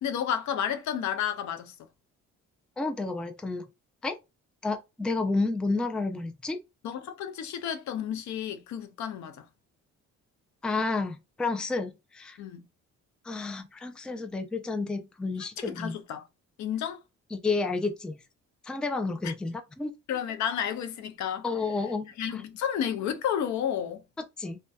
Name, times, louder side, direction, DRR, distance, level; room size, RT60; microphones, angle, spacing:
voice 1, 0.0-1.7 6.8-9.4 12.4-12.7 15.6-16.2 16.6-17.0 19.2-19.3 20.1-21.5 22.2-24.0, left 9 dB, 70° left, 0.5 m, -31 dB
voice 2, 2.8-3.6 4.0-4.2 4.6-6.6 10.6-12.4 13.2-16.0 17.3-18.2 18.6-19.9 21.4-22.4 24.2-24.6, left 3 dB, 5° left, 0.3 m, -31 dB
2.6 x 2.2 x 2.2 m
cardioid pair, 90°, 30 cm